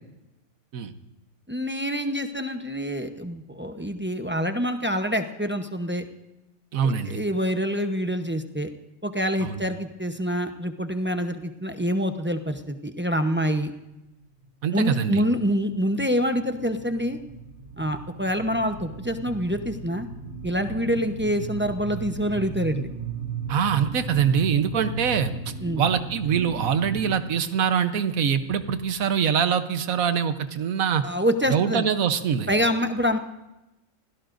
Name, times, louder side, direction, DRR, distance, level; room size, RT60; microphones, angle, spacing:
voice 1, 1.5-6.0 6.8-8.7 9.0-13.7 14.7-17.2 17.8-20.1 20.4-22.9 25.6-25.8 31.0-31.8 32.5-33.2, equal, 10° right, 6 dB, 0.7 m, -26 dB
voice 2, 6.7-7.2 9.4-9.6 14.6-15.2 23.5-31.0 31.5-32.5, right 7 dB, 85° right, 10 dB, 1.3 m, -24 dB
sound 1, 14.5-14.9 15.2-27.1, right 4 dB, 60° right, 3.3 m, -36 dB
28.0 x 17.0 x 2.6 m, 0.97 s
omnidirectional pair, 1.4 m